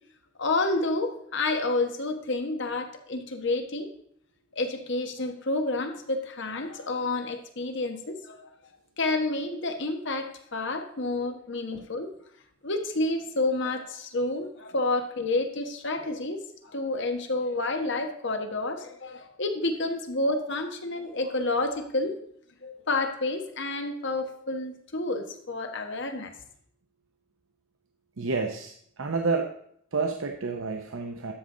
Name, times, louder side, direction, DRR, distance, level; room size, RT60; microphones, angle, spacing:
voice 1, 0.4-3.9 4.5-8.5 9.0-12.1 12.6-22.1 22.6-26.3, left 2 dB, 60° left, 5 dB, 1.2 m, -29 dB
voice 2, 28.2-29.5 29.9-31.3, right 4 dB, 80° right, 4 dB, 0.8 m, -29 dB
12.5 x 6.5 x 3.8 m, 0.67 s
head